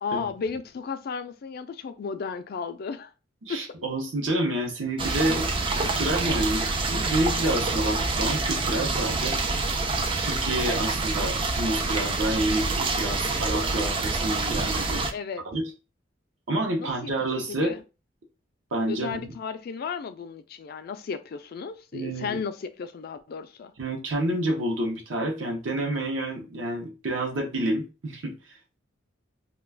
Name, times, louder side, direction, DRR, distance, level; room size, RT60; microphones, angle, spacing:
voice 1, 0.0-3.1 3.5-3.6 15.1-15.5 16.8-17.8 18.9-23.7, left 5 dB, 50° left, 0.3 m, -34 dB
voice 2, 3.4-5.5 5.8-9.4 10.2-15.1 15.4-15.6 16.5-17.7 18.7-19.3 21.9-22.4 23.8-28.6, right 1 dB, 70° right, 0.7 m, -28 dB
sound 1, 5.0-15.1, right 3 dB, 25° right, 0.3 m, -27 dB
2.3 x 2.2 x 3.3 m
head